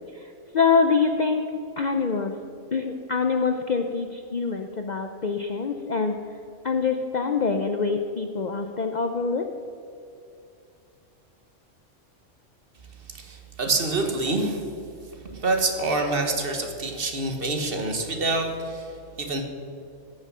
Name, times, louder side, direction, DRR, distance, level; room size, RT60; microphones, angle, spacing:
voice 1, 0.1-1.5 1.8-2.3 2.7-6.2 6.6-9.5, left 5 dB, 50° left, 5 dB, 0.5 m, -25 dB
voice 2, 13.1-14.7 15.3-19.4, right 2 dB, 50° right, 4 dB, 1.4 m, -26 dB
14.5 x 6.5 x 6.1 m, 2.5 s
omnidirectional pair, 1.3 m